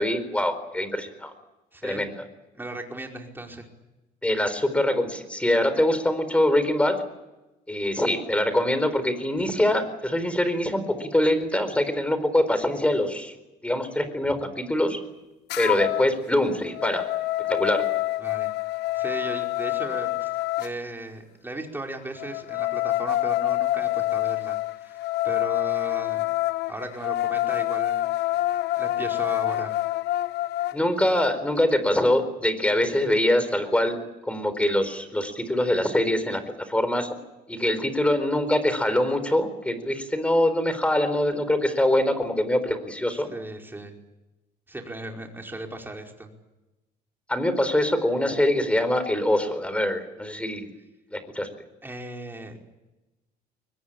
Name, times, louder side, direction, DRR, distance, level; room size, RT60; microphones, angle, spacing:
voice 1, 0.0-1.3 1.8-2.1 4.2-7.0 7.7-13.3 13.6-15.0 15.6-17.1 17.4-17.9 30.7-34.0 34.2-37.1 37.5-43.3 47.3-50.7 51.1-51.5, left 1 dB, 5° left, 12 dB, 4.4 m, -24 dB
voice 2, 1.7-2.1 2.5-3.7 18.2-18.5 18.9-20.3 20.6-25.0 25.2-26.3 26.7-28.1 28.8-29.8 43.1-43.9 44.7-46.3 51.8-52.6, right 2 dB, 10° right, 2 dB, 5.0 m, -36 dB
sound 1, 15.5-16.1 16.5-20.7 22.2-30.8, left 16 dB, 80° left, 0.8 m, -27 dB
23.5 x 20.5 x 8.8 m, 1.0 s
cardioid pair, 110°, 17 cm